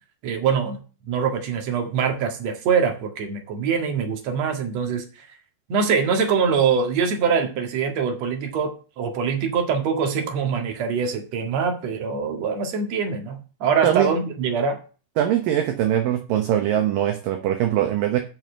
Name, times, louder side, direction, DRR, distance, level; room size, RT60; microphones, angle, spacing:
voice 1, 0.2-5.3 5.7-8.7 9.0-14.8, right 6 dB, 50° right, 3 dB, 2.6 m, -24 dB
voice 2, 15.2-18.2, right 11 dB, 70° right, 6 dB, 2.4 m, -22 dB
7.0 x 6.3 x 7.8 m, 0.35 s
omnidirectional pair, 4.7 m